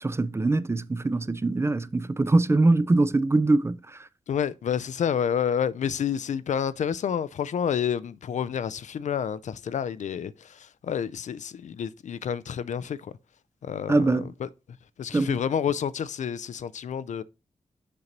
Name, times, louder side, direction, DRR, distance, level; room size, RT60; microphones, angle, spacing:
voice 1, 0.0-3.8 13.9-14.3 15.1-15.4, right 2 dB, 20° right, 0.3 m, -23 dB
voice 2, 4.3-13.1 13.6-14.5 15.0-17.2, left 8 dB, 70° left, 0.4 m, -29 dB
6.7 x 2.9 x 5.1 m
cardioid pair, 65°, 13 cm